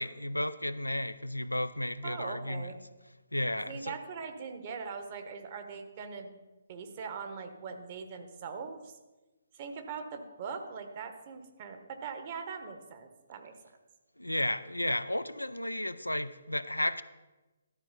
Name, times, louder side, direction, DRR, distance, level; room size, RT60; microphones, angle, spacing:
voice 1, 0.0-2.8 3.3-4.0 14.2-17.0, left 1 dB, 85° left, 0.5 m, -33 dB
voice 2, 2.0-2.8 3.7-6.3 6.7-8.9 9.5-13.8, right 5 dB, 35° right, 1.1 m, -41 dB
12.5 x 4.7 x 5.9 m
figure-of-eight pair, 135°, 0 cm